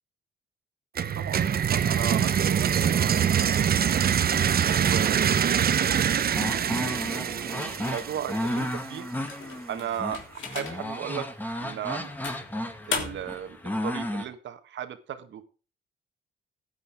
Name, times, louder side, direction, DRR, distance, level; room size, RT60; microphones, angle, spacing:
sound 1, 1.0-8.7, right 8 dB, 50° right, 1.0 m, -24 dB
voice 1, 1.2-4.3 4.8-5.4 5.9-9.1 9.7-11.3 11.6-12.1 12.9-13.6 13.8-15.4, right 9 dB, 70° right, 9 dB, 1.7 m, -36 dB
sound 2, 6.3-14.2, left 1 dB, 10° left, 2.2 m, -33 dB
sound 3, 9.3-11.0 11.5-11.7 12.2-13.4, left 6 dB, 75° left, 3.3 m, -36 dB
15.0 x 9.6 x 3.6 m, 0.38 s
cardioid pair, 90°, 20 cm